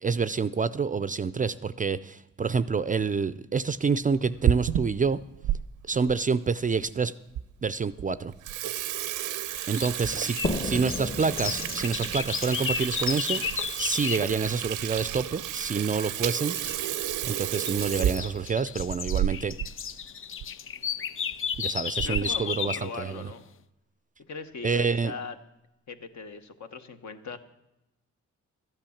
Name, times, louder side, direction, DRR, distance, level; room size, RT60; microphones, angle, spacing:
voice 1, 0.0-5.2 5.9-7.1 7.6-8.3 9.7-13.4 13.8-16.6 17.2-19.6 21.6-23.3 24.6-25.1, right 5 dB, 25° right, 15 dB, 0.4 m, -27 dB
Water tap faucet / Sink (filling or washing), 4.1-5.6 6.1-6.2 6.9-7.0 7.3-7.4 7.8-8.0 8.3-19.7 20.0-20.1 20.4-20.5 21.3-21.6 22.0-22.4, right 11 dB, 80° right, 0.5 m, -31 dB
sound 1, 9.6-14.3 16.5-16.9 17.4-22.9, left 8 dB, 45° left, 0.5 m, -33 dB
voice 2, 10.0-10.6 22.0-23.4 24.3-25.3 25.9-27.4, left 5 dB, 65° left, 8 dB, 1.1 m, -40 dB
sound 2, 10.4-14.0, left 1 dB, 25° left, 1.0 m, -35 dB
12.5 x 8.9 x 7.1 m, 0.91 s
cardioid pair, 85°, 31 cm